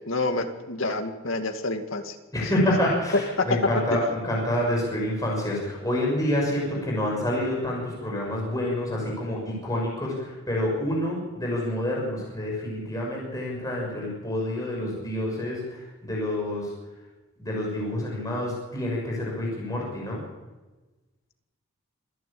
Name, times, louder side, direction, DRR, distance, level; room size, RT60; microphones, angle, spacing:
voice 1, 0.1-2.2 3.4-3.5 3.9-4.0, left 2 dB, 65° left, 5 dB, 2.2 m, -28 dB
voice 2, 2.3-16.7 17.4-20.2, left 1 dB, 15° left, -3 dB, 6.6 m, -28 dB
27.0 x 11.0 x 8.7 m, 1.2 s
head